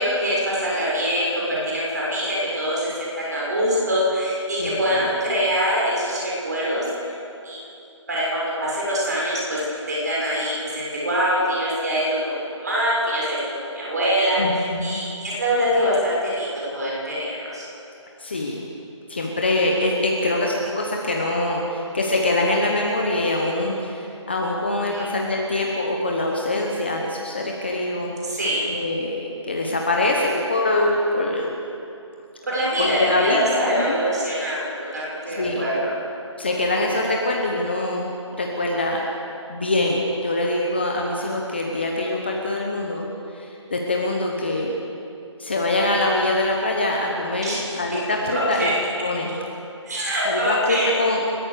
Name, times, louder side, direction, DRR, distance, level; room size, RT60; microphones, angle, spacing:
voice 1, 0.0-7.1 7.4-7.6 8.1-9.6 9.9-13.4 13.7-17.7 24.9-25.1 28.2-28.7 32.5-35.9 47.4-47.7 48.3-48.7 49.9-51.0, equal, 35° right, -5 dB, 6.7 m, -24 dB
voice 2, 4.6-5.1 14.4-15.0 18.2-18.6 19.1-28.1 28.7-31.8 32.8-33.6 33.9-34.0 35.4-35.7 36.4-38.1 38.4-39.1 39.5-43.1 43.3-44.8 45.4-48.7 49.0-49.3 50.2-51.3, left 2 dB, 20° left, 0 dB, 1.1 m, -24 dB
29.5 x 13.5 x 6.8 m, 2.7 s
hypercardioid pair, 180°, 16 cm